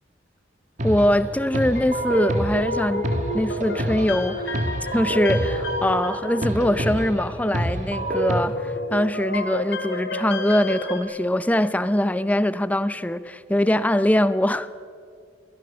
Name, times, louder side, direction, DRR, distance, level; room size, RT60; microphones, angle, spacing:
voice 1, 0.8-3.0 3.3-4.6 4.9-14.8, left 1 dB, 10° left, 0.5 m, -22 dB
sound 1, 0.8-8.4, right 1 dB, 40° right, 1.8 m, -27 dB
sound 2, 1.4-11.0, left 2 dB, 70° left, 3.2 m, -33 dB
21.5 x 19.0 x 7.0 m
head